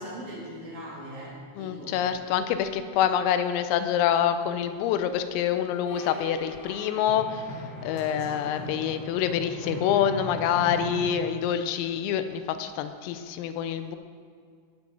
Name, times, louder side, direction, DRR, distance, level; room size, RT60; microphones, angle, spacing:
voice 1, 0.0-1.9 8.1-8.7, equal, 45° right, -7 dB, 3.8 m, -40 dB
voice 2, 1.6-7.5 7.8-14.0, left 9 dB, 90° left, 9 dB, 3.4 m, -26 dB
sound 1, 5.9-11.1, equal, 50° left, 3.4 m, -38 dB
17.5 x 7.6 x 3.9 m, 2.1 s
omnidirectional pair, 5.9 m